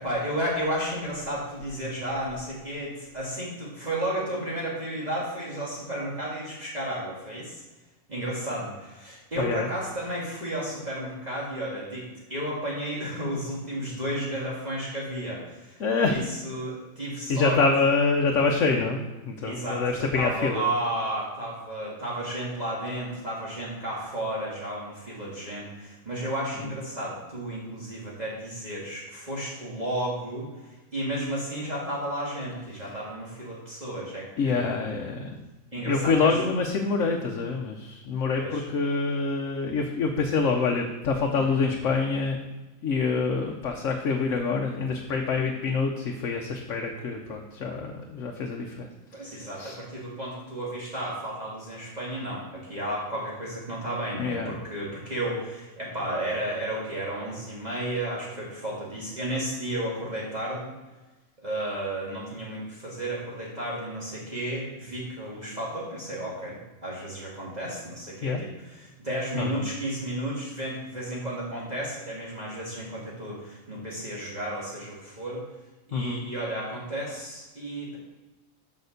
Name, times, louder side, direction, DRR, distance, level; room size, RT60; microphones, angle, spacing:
voice 1, 0.0-7.6 8.1-17.6 19.4-34.7 35.7-36.4 38.3-38.7 41.5-41.6 49.1-60.7 61.4-75.4 75.9-78.0, right 1 dB, 30° right, -6 dB, 2.1 m, -33 dB
voice 2, 9.4-9.7 15.8-16.2 17.3-20.6 34.4-35.4 35.7-42.4 42.8-48.9 49.6-49.8 54.2-54.5 68.2-68.4 69.3-69.7 75.9-76.3, left 4 dB, 70° left, 1 dB, 1.2 m, -26 dB
6.8 x 6.0 x 6.5 m, 1.1 s
omnidirectional pair, 1.4 m